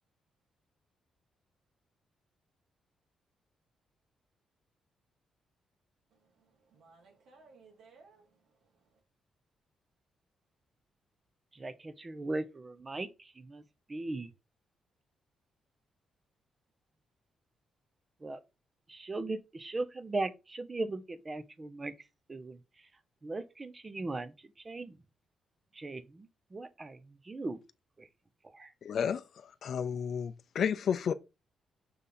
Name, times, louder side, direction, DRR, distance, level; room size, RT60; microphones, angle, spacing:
voice 1, 6.1-9.0, right 4 dB, 75° right, 2.8 m, -61 dB
voice 2, 11.5-13.6 13.9-14.3 18.2-18.4 18.9-21.9 22.3-22.6 23.2-24.3 24.6-25.0 25.7-27.6 28.0-28.1 28.5-28.7, right 2 dB, 25° right, 0.9 m, -38 dB
voice 3, 28.8-29.2 29.6-31.1, left 7 dB, 60° left, 0.5 m, -31 dB
6.8 x 3.6 x 4.2 m
cardioid pair, 105°, 0 cm